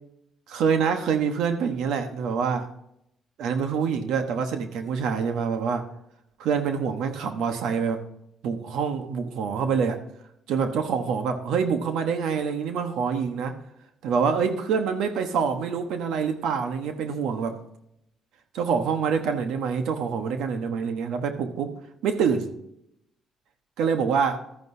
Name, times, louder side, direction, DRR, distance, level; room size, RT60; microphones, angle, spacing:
voice 1, 0.5-2.7 3.4-5.9 6.4-8.0 8.4-10.0 10.5-13.6 14.0-17.6 18.5-22.5 23.8-24.4, right 6 dB, 85° right, 7 dB, 1.1 m, -26 dB
13.0 x 9.4 x 2.7 m, 0.77 s
cardioid pair, 90°, 0 cm